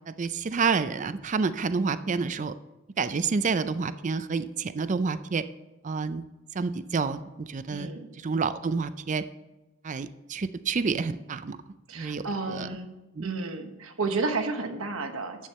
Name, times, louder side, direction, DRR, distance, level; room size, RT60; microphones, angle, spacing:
voice 1, 0.1-2.5 3.0-5.4 5.8-6.2 6.5-7.9 8.2-9.2 9.8-11.6 12.0-12.2 12.5-12.7 13.2-13.3, right 4 dB, 35° right, 13 dB, 0.4 m, -28 dB
voice 2, 7.7-8.1 11.9-12.9 13.2-15.5, right 3 dB, 75° right, 6 dB, 1.2 m, -31 dB
10.5 x 8.4 x 4.3 m, 1.1 s
head